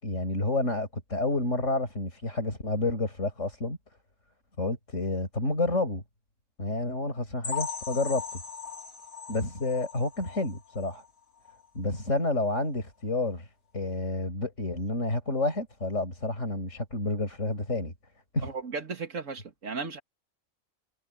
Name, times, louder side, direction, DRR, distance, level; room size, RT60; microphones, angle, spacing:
voice 1, 0.0-3.8 4.6-6.0 6.6-8.4 9.3-11.0 11.7-13.5 13.7-17.9 18.3-18.5, left 2 dB, 60° left, 6.1 m, -29 dB
sound 1, 7.4-11.1 11.4-11.6 12.0-12.1 12.6-12.7, left 6 dB, 80° left, 2.8 m, -39 dB
voice 2, 18.4-20.0, right 4 dB, 65° right, 2.5 m, -35 dB
omnidirectional pair, 1.4 m